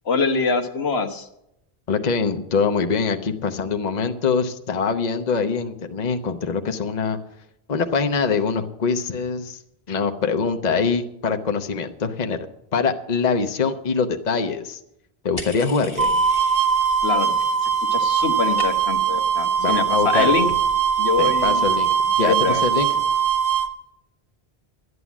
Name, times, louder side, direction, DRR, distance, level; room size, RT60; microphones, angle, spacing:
voice 1, 0.0-1.3 17.0-17.3 17.9-20.5 21.0-21.6 22.2-22.6, left 4 dB, 85° left, 5 dB, 1.5 m, -24 dB
voice 2, 1.9-7.2 7.7-9.6 9.9-12.5 12.7-14.8 15.2-16.2 19.6-20.3 21.2-23.0, left 5 dB, 45° left, 6 dB, 1.0 m, -24 dB
sound 1, 15.4-17.0 17.3-17.8 18.0-19.1, left 2 dB, 65° left, 1.8 m, -38 dB
sound 2, 16.0-23.7, right 7 dB, 60° right, 1.2 m, -21 dB
12.5 x 9.6 x 7.2 m, 0.81 s
omnidirectional pair, 1.0 m